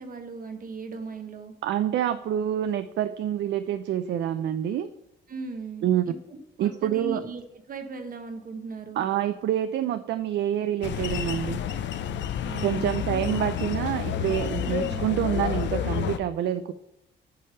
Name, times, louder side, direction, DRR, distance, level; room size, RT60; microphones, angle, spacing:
voice 1, 0.0-1.5 5.3-7.4 7.7-9.0 12.4-13.2 14.6-15.1, right 4 dB, 45° right, 7 dB, 1.2 m, -38 dB
voice 2, 1.6-4.9 5.8-6.1 6.6-7.2 9.0-11.6 12.6-16.7, right 11 dB, 65° right, 11 dB, 0.4 m, -27 dB
sound 1, 10.8-16.2, left 9 dB, 65° left, 0.6 m, -29 dB
8.7 x 3.3 x 5.5 m, 0.89 s
cardioid pair, 90°, 20 cm